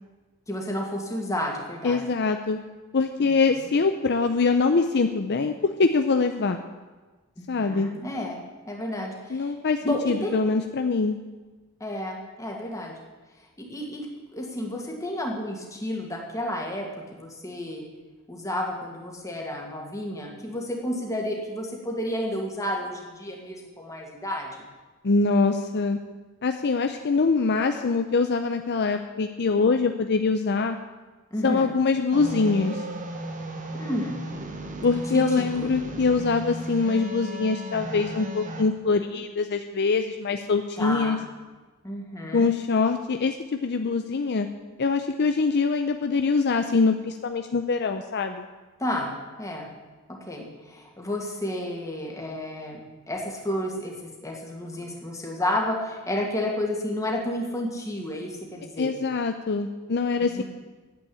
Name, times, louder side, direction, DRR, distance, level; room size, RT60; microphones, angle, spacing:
voice 1, 0.5-2.0 3.2-3.7 7.4-8.4 8.7-9.5 9.8-10.4 11.8-13.0 13.6-14.1 14.3-17.8 18.3-24.7 31.3-31.7 33.8-34.2 35.1-35.8 40.8-41.2 41.8-42.5 48.8-49.1 49.4-49.7 50.3-52.8 53.1-58.9 60.2-60.4, left 1 dB, 15° left, 0 dB, 2.2 m, -31 dB
voice 2, 1.8-2.6 2.9-5.5 5.8-6.6 7.5-7.9 9.3-11.2 25.0-26.0 26.4-30.8 31.4-32.8 34.8-41.2 42.3-44.5 44.8-48.4 58.8-60.4, left 4 dB, 50° left, 6 dB, 0.6 m, -24 dB
sound 1, 32.1-38.6, right 1 dB, 35° right, 1.3 m, -35 dB
10.0 x 8.4 x 8.6 m, 1.3 s
head